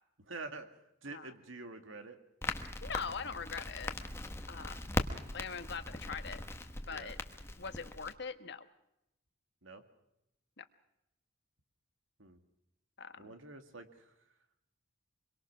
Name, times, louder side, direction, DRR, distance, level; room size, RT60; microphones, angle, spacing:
voice 1, 0.3-0.7 1.0-2.2 6.9-7.1 9.6-9.8 12.2-12.4 13.2-14.1, right 3 dB, 75° right, 7 dB, 2.2 m, -47 dB
Crackle, 2.4-8.1, left 1 dB, 15° left, 1.2 m, -40 dB
voice 2, 2.8-3.9 4.5-5.0 5.3-6.4 6.9-7.2 7.6-8.7 10.6-10.7 13.0-13.3, left 5 dB, 55° left, 10 dB, 1.3 m, -42 dB
25.0 x 23.0 x 6.1 m, 0.86 s
head